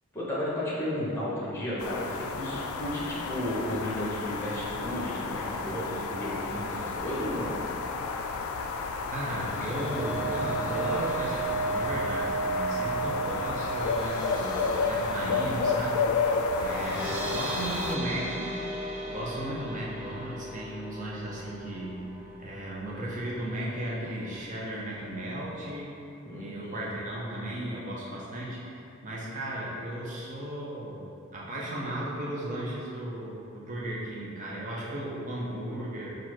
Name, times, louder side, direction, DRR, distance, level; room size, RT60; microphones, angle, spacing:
voice 1, 0.1-7.5 16.8-17.3 26.2-26.8, left 1 dB, 10° left, -8 dB, 1.0 m, -33 dB
sound 1, 1.8-18.0, left 4 dB, 90° left, 0.3 m, -32 dB
voice 2, 9.1-14.6 14.9-22.1 22.4-25.9 26.4-31.1 31.3-36.1, right 1 dB, 35° right, -5 dB, 0.8 m, -35 dB
sound 2, 9.3-23.5 23.8-24.0 24.3-24.5, right 3 dB, 70° right, 0.9 m, -36 dB
4.1 x 2.5 x 4.5 m, 2.7 s
head